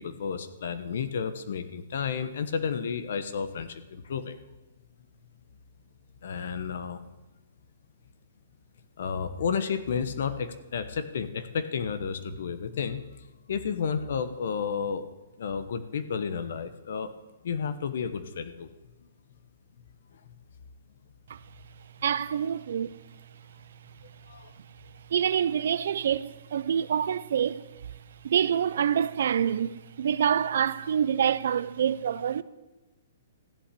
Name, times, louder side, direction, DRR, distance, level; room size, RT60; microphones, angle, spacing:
voice 1, 0.0-4.4 6.2-7.0 9.0-13.0 13.5-15.0 15.4-17.1 17.4-18.7 24.3-24.5, left 6 dB, 65° left, 1.1 m, -31 dB
voice 2, 22.0-22.9 25.1-27.6 28.2-32.4, right 8 dB, 65° right, 0.5 m, -26 dB
15.0 x 8.2 x 8.5 m
hypercardioid pair, 165°, 0 cm